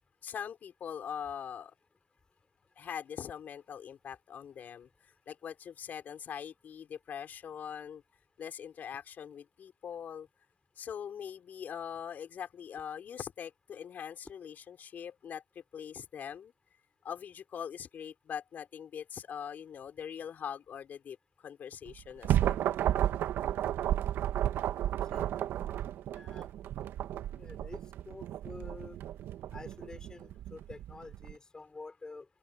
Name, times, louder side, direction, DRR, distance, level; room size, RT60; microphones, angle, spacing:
voice 1, 0.2-1.7 2.8-8.0 8.4-10.3 10.8-16.5 17.0-21.2 21.4-22.6, left 8 dB, 35° left, 6.1 m, -42 dB
sound 1, 21.9-31.3, right 12 dB, 50° right, 1.8 m, -33 dB
voice 2, 25.1-25.4 26.1-26.5 27.3-27.8 28.1-29.0 29.5-32.3, left 3 dB, 15° left, 6.6 m, -48 dB
supercardioid pair, 115°, 5 cm